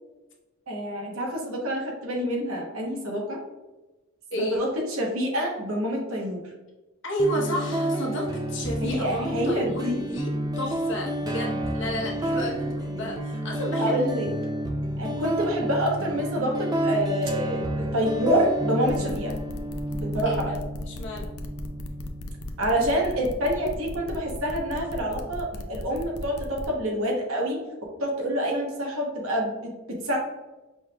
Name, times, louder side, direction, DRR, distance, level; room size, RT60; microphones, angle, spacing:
voice 1, 0.7-3.4 4.4-6.4 8.8-10.0 13.8-14.3 15.0-19.3 19.9-20.5 22.6-27.6 28.0-30.2, equal, 80° right, 0 dB, 1.0 m, -27 dB
voice 2, 4.3-4.6 7.0-13.9 20.2-20.6 20.9-21.3, equal, 60° left, -1 dB, 1.0 m, -31 dB
sound 1, 7.2-25.2, right 1 dB, 20° right, 0.3 m, -31 dB
sound 2, 18.9-26.7, left 1 dB, 85° left, 0.5 m, -37 dB
5.4 x 3.3 x 2.3 m, 1.1 s
head